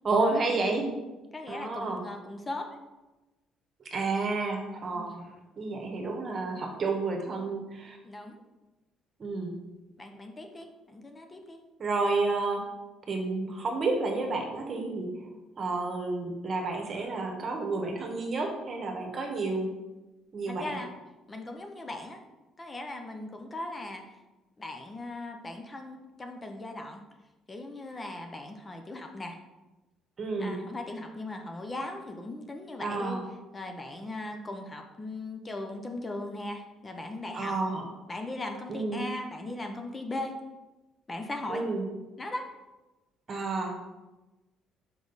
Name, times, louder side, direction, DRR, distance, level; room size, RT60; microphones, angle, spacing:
voice 1, 0.0-0.9 1.5-2.0 3.8-5.2 5.6-8.0 9.2-9.5 11.8-12.6 13.1-15.3 15.6-19.7 20.3-20.8 30.2-30.6 32.8-33.2 37.3-37.9 38.7-39.1 41.5-41.9 43.3-43.8, right 3 dB, 45° right, 2 dB, 1.2 m, -30 dB
voice 2, 1.3-2.7 4.9-5.3 8.0-8.4 10.0-11.6 20.5-20.9 21.3-22.2 22.6-24.0 24.6-27.0 27.5-29.4 30.4-33.2 33.5-37.5 38.1-40.4 41.1-41.6 42.2-42.5, left 2 dB, 25° left, 4 dB, 0.7 m, -38 dB
5.2 x 4.7 x 4.0 m, 1.1 s
cardioid pair, 85°, 0 cm